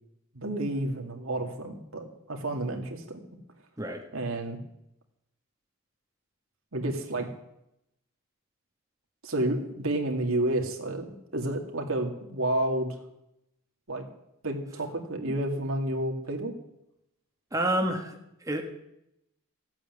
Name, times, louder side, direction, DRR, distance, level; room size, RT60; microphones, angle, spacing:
voice 1, 0.3-3.2 4.1-4.6 6.7-7.3 9.2-12.9 13.9-14.1 14.4-16.5, right 1 dB, 70° right, 3 dB, 2.4 m, -30 dB
voice 2, 17.5-18.6, right 1 dB, 15° right, 1 dB, 1.5 m, -29 dB
15.5 x 8.8 x 9.5 m, 0.82 s
head